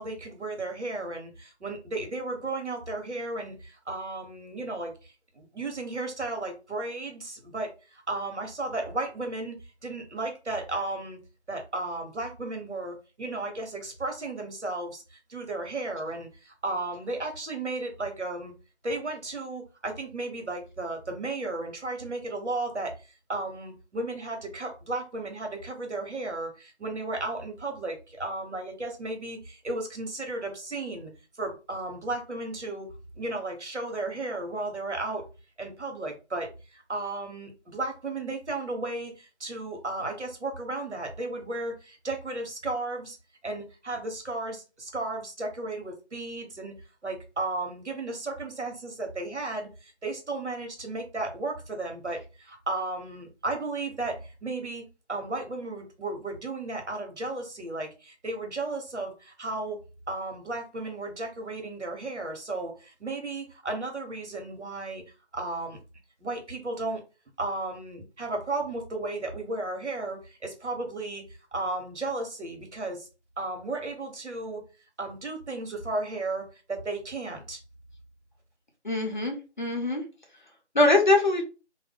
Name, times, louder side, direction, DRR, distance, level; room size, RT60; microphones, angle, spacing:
voice 1, 0.0-9.6 9.8-11.2 11.5-18.5 18.8-22.9 23.3-31.1 31.4-32.9 33.2-35.2 35.6-43.2 43.4-46.7 47.0-59.8 60.1-65.0 65.3-65.8 66.2-67.0 67.4-71.2 71.5-73.1 73.4-74.6 75.0-77.6, right 2 dB, 80° right, 1.2 m, -34 dB
voice 2, 78.8-80.0 80.7-81.4, left 2 dB, 45° left, 0.7 m, -23 dB
2.5 x 2.2 x 3.6 m
figure-of-eight pair, 170°, 34 cm